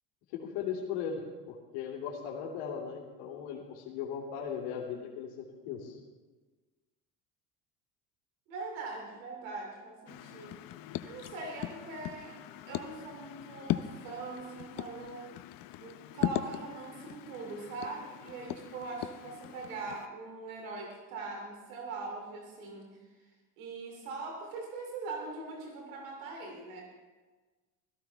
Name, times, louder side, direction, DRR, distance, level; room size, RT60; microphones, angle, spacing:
voice 1, 0.3-1.2 1.5-6.0, left 7 dB, 75° left, -2 dB, 2.6 m, -38 dB
voice 2, 8.5-10.6 10.8-12.4 12.6-15.3 15.8-23.0 23.6-26.8, right 3 dB, 90° right, 1 dB, 2.8 m, -42 dB
sound 1, 10.1-20.1, left 13 dB, 55° left, 0.7 m, -39 dB
16.5 x 14.0 x 3.4 m, 1.3 s
supercardioid pair, 95°, 40 cm